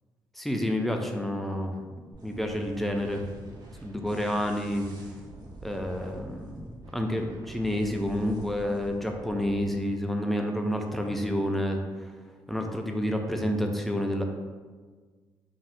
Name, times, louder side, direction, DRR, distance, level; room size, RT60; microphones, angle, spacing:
voice 1, 0.4-1.7 2.2-3.2 3.8-4.9 5.6-6.7 6.9-11.8 12.5-14.2, left 1 dB, ahead, 3 dB, 0.3 m, -29 dB
sound 1, 2.1-9.7, right 2 dB, 50° right, 0.5 m, -46 dB
4.0 x 2.0 x 2.5 m, 1.5 s
cardioid pair, 100°, 9 cm